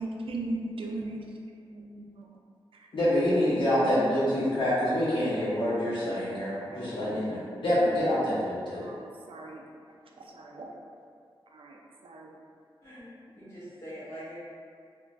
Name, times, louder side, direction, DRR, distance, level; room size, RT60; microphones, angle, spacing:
voice 1, 0.0-2.3 2.7-2.9 5.8-6.0 6.4-6.9 8.8-9.6 10.2-10.7 11.5-11.8 12.0-12.3, right 2 dB, 70° right, 0 dB, 0.4 m, -38 dB
voice 2, 2.9-8.9, left 1 dB, 60° left, -11 dB, 0.7 m, -26 dB
voice 3, 13.4-14.4, equal, 30° left, -12 dB, 0.8 m, -43 dB
3.0 x 2.1 x 2.5 m, 2.2 s
cardioid pair, 55°, 9 cm